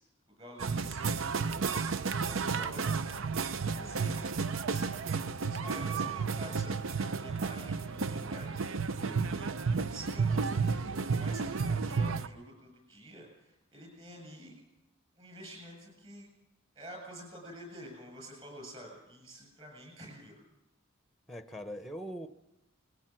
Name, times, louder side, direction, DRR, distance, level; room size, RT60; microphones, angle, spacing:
voice 1, 0.4-1.8 2.2-5.0 5.4-14.6 15.2-16.3 16.7-20.4, equal, 30° right, 2 dB, 7.9 m, -49 dB
sound 1, 0.6-12.3, right 5 dB, 70° right, 0.6 m, -32 dB
voice 2, 9.0-9.3 21.3-22.3, equal, ahead, 9 dB, 0.8 m, -42 dB
20.5 x 17.0 x 7.6 m, 0.93 s
head